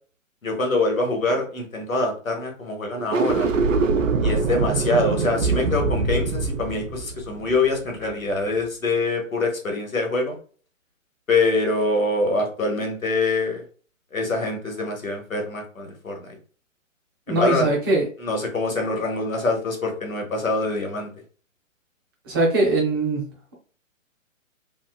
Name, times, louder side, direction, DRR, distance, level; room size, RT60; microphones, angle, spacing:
voice 1, 0.4-3.5 4.2-10.4 11.3-13.6 14.1-16.4 17.3-17.7 18.2-21.1, left 2 dB, 85° left, 2 dB, 1.1 m, -24 dB
sound 1, 3.0-8.3, right 4 dB, 70° right, 0.6 m, -24 dB
voice 2, 17.3-18.1 22.3-23.2, right 2 dB, 20° right, -2 dB, 0.6 m, -21 dB
2.9 x 2.3 x 2.3 m, 0.42 s
figure-of-eight pair, 135°, 40 cm